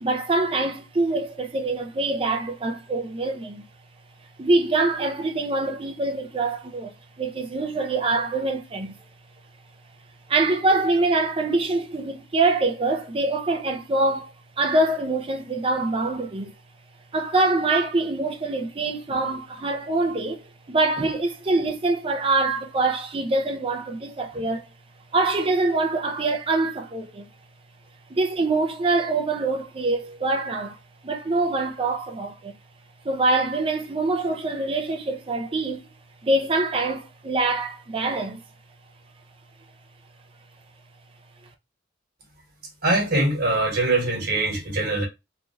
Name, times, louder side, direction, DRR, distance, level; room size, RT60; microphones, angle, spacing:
voice 1, 0.0-3.6 4.4-9.0 10.3-14.3 14.6-16.5 17.1-24.7 25.1-27.3 28.1-30.8 31.0-32.5 33.0-35.8 36.2-38.4, right 2 dB, 30° right, 0.5 m, -24 dB
voice 2, 42.8-45.0, right 2 dB, 55° right, 1.3 m, -22 dB
3.1 x 2.4 x 2.5 m
head